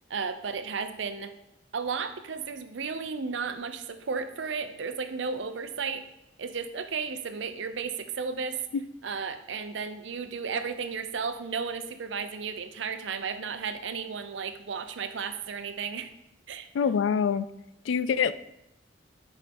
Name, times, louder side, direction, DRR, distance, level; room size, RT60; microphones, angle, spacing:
voice 1, 0.1-1.3 1.7-6.0 6.4-8.6 9.0-16.1 16.5-16.7, right 5 dB, 80° right, 10 dB, 0.6 m, -34 dB
voice 2, 16.7-17.4 17.9-18.3, left 7 dB, 90° left, 14 dB, 0.3 m, -25 dB
5.2 x 4.9 x 4.3 m, 0.84 s
head